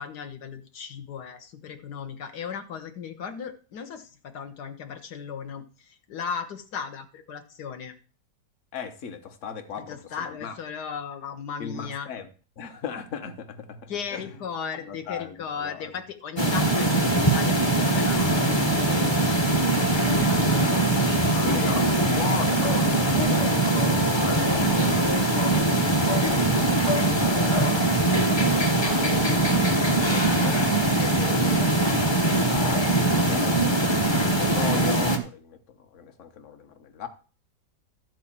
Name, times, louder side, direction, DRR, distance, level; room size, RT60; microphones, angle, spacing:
voice 1, 0.0-7.9 9.8-12.1 13.9-21.7 25.1-25.5 31.0-31.7, left 6 dB, 70° left, 8 dB, 1.6 m, -37 dB
voice 2, 8.7-10.6 11.6-12.3 12.6-14.3 14.9-15.9 21.4-25.1 26.0-31.0 31.3-31.5 32.0-37.1, left 6 dB, 50° left, 9 dB, 1.3 m, -38 dB
sound 1, 16.4-35.2, right 2 dB, 25° left, 0.7 m, -22 dB
12.5 x 4.3 x 7.2 m, 0.38 s
omnidirectional pair, 1.8 m